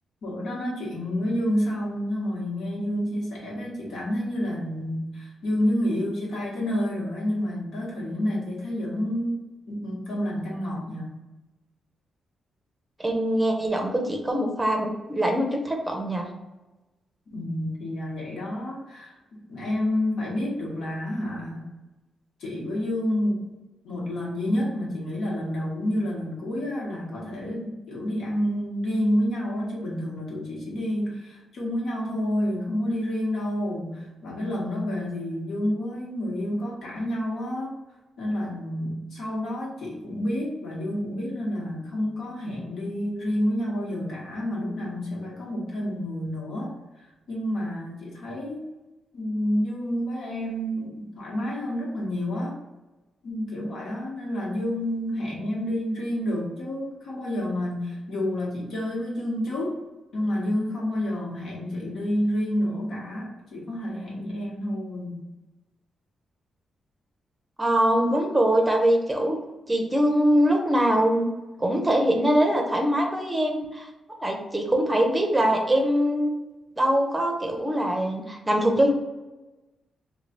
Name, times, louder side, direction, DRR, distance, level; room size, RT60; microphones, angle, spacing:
voice 1, 0.2-9.4 9.7-11.1 17.3-21.6 22.4-23.4 23.8-37.8 38.2-46.7 47.3-48.7 49.1-52.6 53.2-59.8 60.1-65.2, equal, 80° left, -4 dB, 1.3 m, -29 dB
voice 2, 13.0-16.3 67.6-69.4 69.7-71.3 71.6-73.9 74.2-76.3 76.8-78.9, right 1 dB, 15° right, 2 dB, 0.6 m, -23 dB
3.2 x 2.3 x 3.9 m, 1.1 s
cardioid pair, 115°, 0 cm